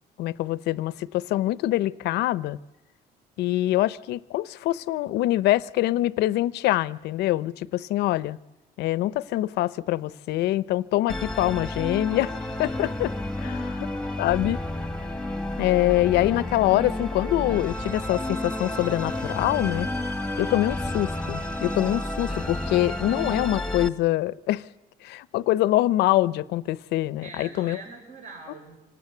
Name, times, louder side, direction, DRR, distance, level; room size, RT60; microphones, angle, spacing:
voice 1, 0.2-2.6 3.4-8.4 8.8-13.1 13.4-13.6 14.2-14.6 15.6-19.9 20.4-24.6 25.0-27.8, left 15 dB, 80° left, 0.7 m, -24 dB
Musical instrument, 11.1-23.9, left 1 dB, 5° left, 1.4 m, -31 dB
voice 2, 13.4-13.9 27.2-28.8, right 3 dB, 50° right, 5.1 m, -44 dB
26.0 x 18.0 x 8.4 m
cardioid pair, 110°, 17 cm